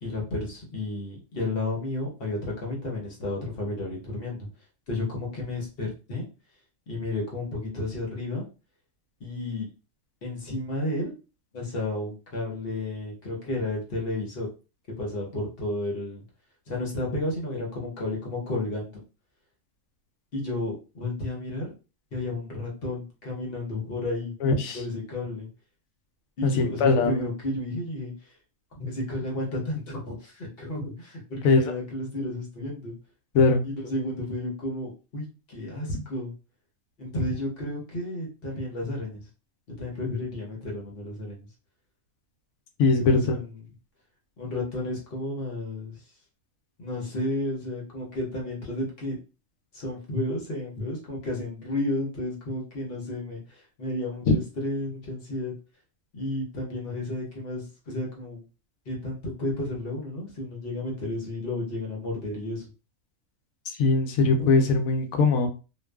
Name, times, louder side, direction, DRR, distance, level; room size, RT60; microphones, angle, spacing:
voice 1, 0.0-4.5 4.9-6.3 6.9-8.5 9.2-9.7 10.2-11.1 11.5-14.5 15.0-16.2 16.7-18.9 20.3-21.7 22.1-24.3 24.7-25.5 26.4-28.3 28.8-32.9 33.6-36.3 37.0-39.3 39.8-41.5 42.8-43.6 44.4-46.0 46.8-49.2 49.7-55.5 56.1-58.4 58.9-62.6, left 2 dB, 50° left, -2 dB, 0.9 m, -32 dB
voice 2, 24.4-24.8 26.4-26.5 26.8-27.2 31.4-31.6 33.3-33.6 42.8-43.2 63.8-65.5, left 4 dB, 90° left, 5 dB, 1.0 m, -20 dB
2.6 x 2.3 x 2.2 m, 0.32 s
omnidirectional pair, 1.4 m